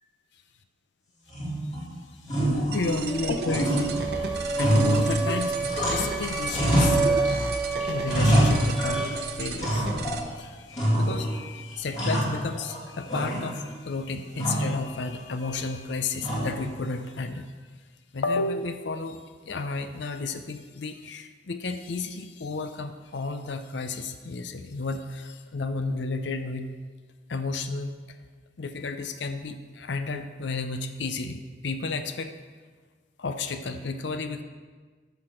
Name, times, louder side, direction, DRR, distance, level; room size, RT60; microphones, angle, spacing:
sound 1, 1.3-1.9 2.2-3.2 3.4-6.2 6.5-7.5 7.8-9.2 9.6-10.3 10.7-11.4 11.7-12.8 13.1-13.8 14.4-14.8 16.2-16.7, equal, 40° left, 2.5 m, -25 dB
voice 1, 2.7-17.5 18.1-19.2 19.4-26.8 27.3-28.0 28.6-32.3 33.2-34.4, left 3 dB, 70° left, 8 dB, 0.6 m, -32 dB
sound 2, 2.7-10.2, right 4 dB, 55° right, 0.8 m, -35 dB
sound 3, 3.1-9.1, right 4 dB, 10° left, 1.9 m, -30 dB
13.5 x 5.9 x 4.4 m, 1.5 s
head